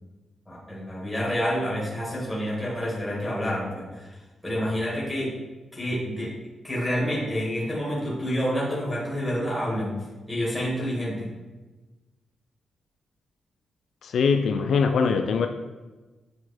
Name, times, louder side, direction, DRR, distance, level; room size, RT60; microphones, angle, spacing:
voice 1, 0.5-4.1 4.4-5.3 5.7-6.3 6.6-9.9 10.3-11.3, equal, ahead, -7 dB, 2.0 m, -28 dB
voice 2, 14.0-15.5, left 5 dB, 60° left, 5 dB, 0.4 m, -22 dB
8.2 x 4.4 x 4.3 m, 1.2 s
wide cardioid pair, 170°, 0 cm